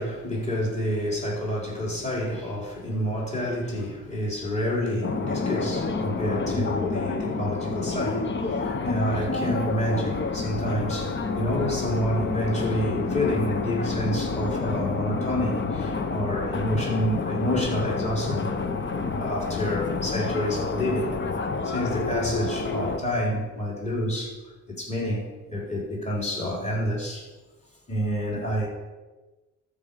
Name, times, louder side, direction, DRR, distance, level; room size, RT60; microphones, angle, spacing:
voice 1, 0.0-18.5 19.1-21.1 21.6-24.4 24.7-27.3 27.9-28.7, equal, 25° left, -4 dB, 4.2 m, -28 dB
sound 1, 5.0-23.0, left 4 dB, 40° left, 1.1 m, -29 dB
13.0 x 5.3 x 6.9 m, 1.2 s
cardioid pair, 90°, 30 cm